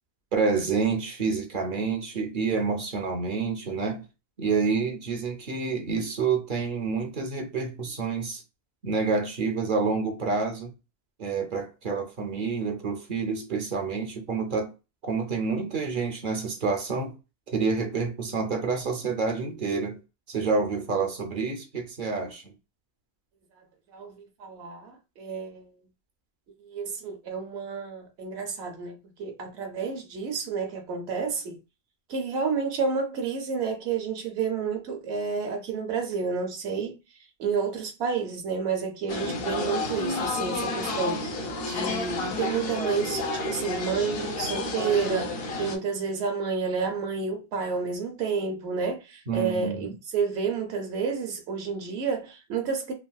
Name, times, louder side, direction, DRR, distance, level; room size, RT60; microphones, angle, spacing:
voice 1, 0.3-4.0 4.4-8.4 8.8-10.7 11.2-14.7 15.0-17.2 17.5-20.0 20.3-22.5 49.3-49.9, right 4 dB, 55° right, 0.7 m, -28 dB
voice 2, 23.9-25.7 26.6-31.6 32.1-37.0 37.4-52.9, right 5 dB, 75° right, 1.0 m, -30 dB
Restaurant Ambience binaural, 39.1-45.8, left 2 dB, 65° left, 0.9 m, -30 dB
3.4 x 2.3 x 2.2 m
omnidirectional pair, 1.1 m